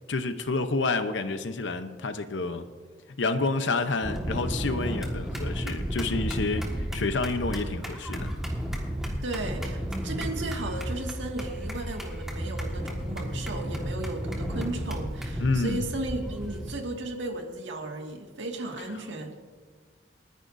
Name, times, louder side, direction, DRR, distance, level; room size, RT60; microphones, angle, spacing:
voice 1, 0.1-2.7 3.2-8.3 15.4-15.8, left 3 dB, 80° left, 9 dB, 0.8 m, -29 dB
sound 1, 4.0-16.7, equal, ahead, 1.6 m, -33 dB
voice 2, 9.2-19.4, right 2 dB, 80° right, 2 dB, 2.0 m, -35 dB
29.0 x 10.0 x 2.7 m, 1.5 s
head